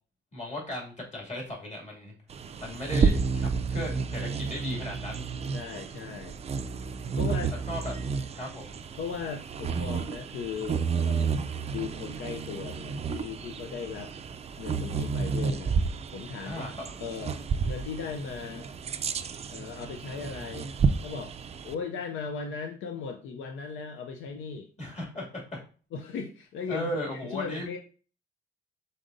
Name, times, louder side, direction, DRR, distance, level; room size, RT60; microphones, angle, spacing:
voice 1, 0.3-2.1 2.6-5.2 7.7-7.9 8.3-8.8 16.5-16.9 24.8-25.6 26.7-27.6, left 1 dB, 35° left, -2 dB, 2.4 m, -36 dB
Bird vocalization bird call bird song, 2.3-21.8, right 5 dB, 35° right, 0.4 m, -31 dB
voice 2, 5.5-6.4 7.2-7.6 9.0-11.4 11.7-14.1 14.6-15.8 16.1-16.6 17.0-17.4 17.6-18.7 19.5-20.7 21.0-21.4 21.6-24.7 25.9-26.9 27.2-27.8, left 6 dB, 80° left, 4 dB, 0.5 m, -37 dB
5.0 x 4.0 x 2.6 m, 0.38 s
cardioid pair, 90°, 20 cm